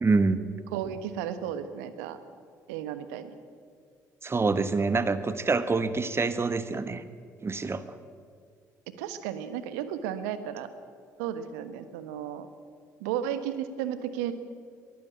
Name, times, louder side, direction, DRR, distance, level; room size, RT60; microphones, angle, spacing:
voice 1, 0.0-0.4 4.2-7.0 7.4-7.8, right 3 dB, 30° right, 11 dB, 1.4 m, -26 dB
voice 2, 0.7-2.2 2.7-3.4 9.0-10.7 11.2-12.5 13.0-14.3, right 10 dB, 75° right, 11 dB, 1.3 m, -33 dB
22.0 x 15.0 x 8.6 m, 2.1 s
hypercardioid pair, 50°, 9 cm